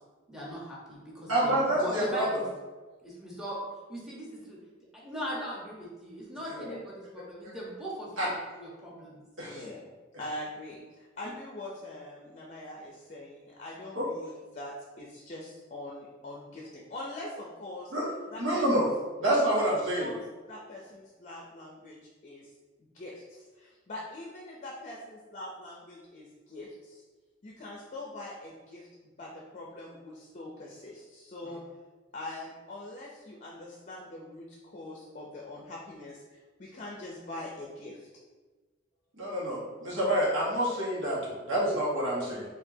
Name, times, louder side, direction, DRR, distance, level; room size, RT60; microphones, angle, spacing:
voice 1, 0.3-2.4 3.0-3.6 3.9-4.6 4.9-9.2, equal, 5° right, -5 dB, 1.0 m, -39 dB
voice 2, 1.3-2.4 8.2-8.3 9.4-9.6 13.9-14.0 17.9-18.1 18.4-18.9 19.2-20.1 39.2-42.4, right 1 dB, 90° right, -6 dB, 1.4 m, -27 dB
voice 3, 9.5-9.9 10.2-17.9 18.3-18.8 19.4-19.6 19.9-20.2 20.5-22.5 22.9-23.2 23.9-27.0 27.4-28.9 29.2-31.6 32.1-38.1, left 1 dB, 40° left, -2 dB, 0.5 m, -43 dB
4.7 x 2.8 x 2.7 m, 1.3 s
head